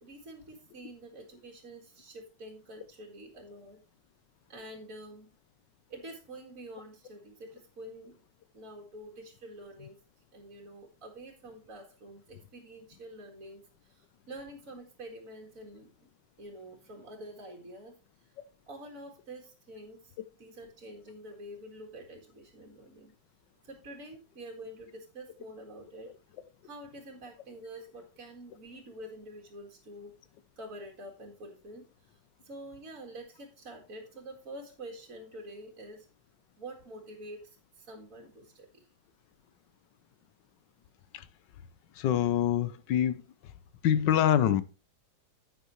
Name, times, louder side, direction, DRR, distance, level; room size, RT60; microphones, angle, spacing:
voice 1, 0.0-3.8 4.5-5.3 5.9-8.1 8.5-9.9 10.3-15.9 16.4-17.9 18.7-23.1 23.6-26.1 26.6-30.1 30.6-31.8 32.4-36.1 36.6-38.8, right 1 dB, 50° right, 2.4 m, -47 dB
voice 2, 41.9-43.5 43.8-44.6, left 10 dB, 75° left, 1.4 m, -26 dB
10.5 x 8.3 x 3.1 m
omnidirectional pair, 2.0 m